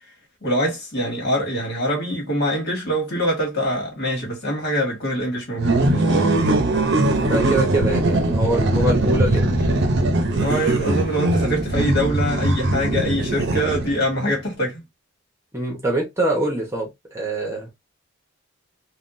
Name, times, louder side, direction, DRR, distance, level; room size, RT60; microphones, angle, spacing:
voice 1, 0.4-6.3 10.3-14.8, equal, 50° left, 1.6 m, -24 dB
sound 1, 5.6-14.1, right 2 dB, 55° right, 0.7 m, -20 dB
voice 2, 7.1-9.9 15.5-17.7, right 1 dB, 15° right, 1.0 m, -24 dB
3.5 x 2.3 x 2.6 m
head